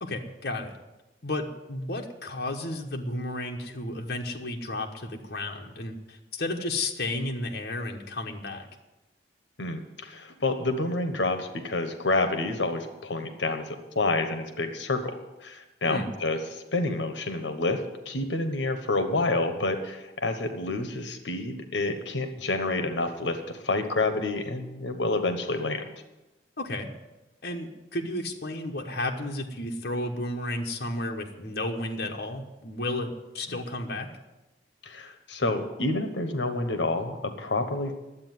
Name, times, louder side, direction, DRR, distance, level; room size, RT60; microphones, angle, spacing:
voice 1, 0.0-0.7 1.2-8.7 15.8-16.1 26.6-26.9 27.4-34.1, left 1 dB, 55° left, 1 dB, 1.2 m, -32 dB
voice 2, 9.6-15.1 15.4-25.8 34.8-38.0, left 2 dB, 70° left, 8 dB, 1.2 m, -28 dB
11.5 x 8.1 x 9.5 m, 1.0 s
head